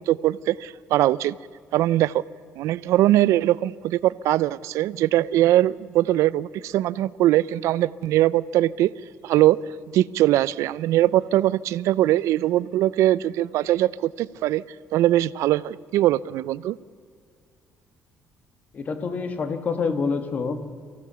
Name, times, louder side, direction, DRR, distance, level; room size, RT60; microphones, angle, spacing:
voice 1, 0.0-1.4 1.7-2.2 2.6-8.9 9.2-9.6 9.9-14.6 14.9-16.8, right 14 dB, 70° right, 19 dB, 0.5 m, -21 dB
voice 2, 18.7-20.6, left 5 dB, 30° left, 9 dB, 1.4 m, -27 dB
24.0 x 16.0 x 6.9 m, 2.2 s
cardioid pair, 175°, 5 cm